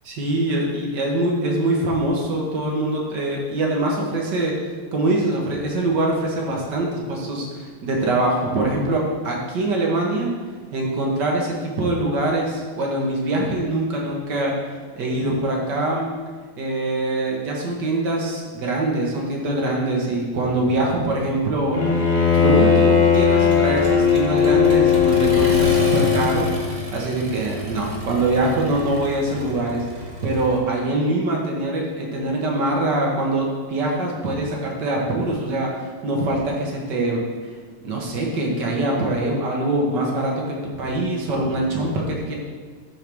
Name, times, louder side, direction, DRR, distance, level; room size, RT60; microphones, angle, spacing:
voice 1, 0.1-4.6 4.9-10.3 10.7-14.6 15.0-16.1 16.6-21.8 22.3-26.5 26.9-29.8 30.2-35.7 36.0-37.6 37.8-42.4, right 2 dB, 60° right, -1 dB, 1.8 m, -23 dB
Bowed string instrument, 21.7-26.6, left 7 dB, 45° left, 0.6 m, -17 dB
Accelerating revving vroom, 22.3-30.6, right 1 dB, 25° right, 1.2 m, -32 dB
12.0 x 4.6 x 3.5 m, 1.5 s
omnidirectional pair, 2.3 m